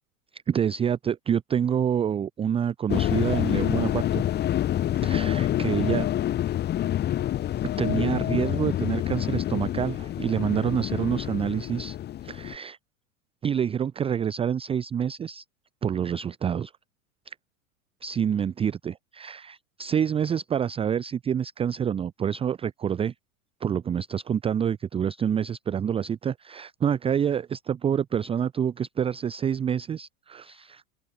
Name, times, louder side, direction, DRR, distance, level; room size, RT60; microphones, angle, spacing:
voice 1, 0.3-4.2 4.9-6.1 7.8-12.0 12.2-12.8 13.4-15.4 15.8-16.7 17.3-17.4 18.0-23.1 23.6-30.8, right 8 dB, 15° right, 0.5 m, -27 dB
sound 1, 2.9-12.6, left 12 dB, 25° left, 0.8 m, -27 dB
open air
hypercardioid pair, 95°, 42 cm